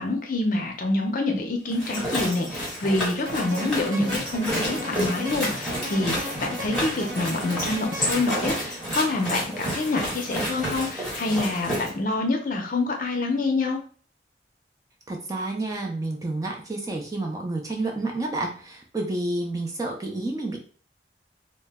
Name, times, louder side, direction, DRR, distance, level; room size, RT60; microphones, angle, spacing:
voice 1, 0.0-13.8, left 2 dB, 50° left, 3 dB, 0.5 m, -26 dB
sound 1, 1.7-11.9, equal, ahead, 1.1 m, -30 dB
sound 2, 3.3-8.9, equal, 80° right, 0.9 m, -36 dB
voice 2, 15.1-20.6, right 2 dB, 20° right, 1 dB, 0.4 m, -29 dB
2.1 x 2.0 x 3.3 m, 0.43 s
head